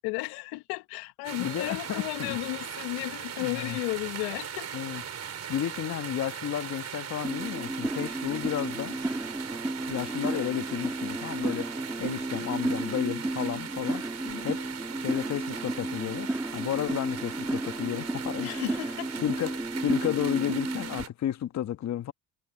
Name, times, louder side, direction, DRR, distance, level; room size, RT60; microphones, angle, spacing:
voice 1, 0.0-4.7 14.2-14.5 18.4-19.1, left 24 dB, 75° left, 1.6 m, -34 dB
sound 1, 1.2-21.1, right 8 dB, 40° right, 5.3 m, -39 dB
voice 2, 1.4-2.4 3.4-3.8 4.7-5.0 5.5-9.0 9.9-14.1 14.4-14.7 15.0-18.5 19.2-22.1, left 11 dB, 45° left, 1.4 m, -32 dB
sound 2, 7.2-21.0, right 1 dB, 5° right, 1.7 m, -33 dB
hypercardioid pair, 75°, 39 cm